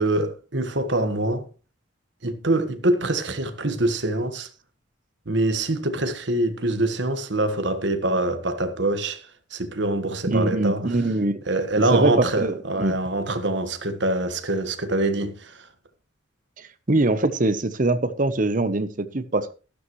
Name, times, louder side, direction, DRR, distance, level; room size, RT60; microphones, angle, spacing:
voice 1, 0.0-1.5 2.2-4.5 5.2-10.9 11.5-15.7, right 2 dB, 65° right, 1.5 m, -24 dB
voice 2, 10.3-11.4 11.8-13.0 16.6-19.5, right 2 dB, 40° right, 0.9 m, -23 dB
13.0 x 12.0 x 3.1 m
head